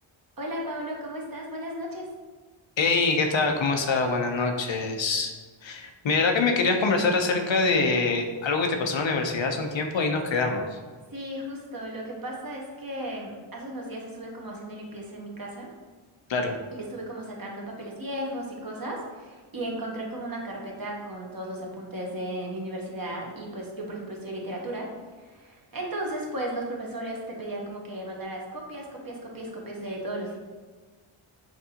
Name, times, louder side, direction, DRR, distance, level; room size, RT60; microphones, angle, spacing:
voice 1, 0.4-2.1 11.1-15.7 16.8-24.9 25.2-30.4, right 1 dB, 45° right, -1 dB, 1.0 m, -35 dB
voice 2, 2.8-5.3 5.6-10.8 16.3-16.6, left 3 dB, 65° left, 4 dB, 0.6 m, -24 dB
5.9 x 2.6 x 2.8 m, 1.4 s
wide cardioid pair, 55°, 50 cm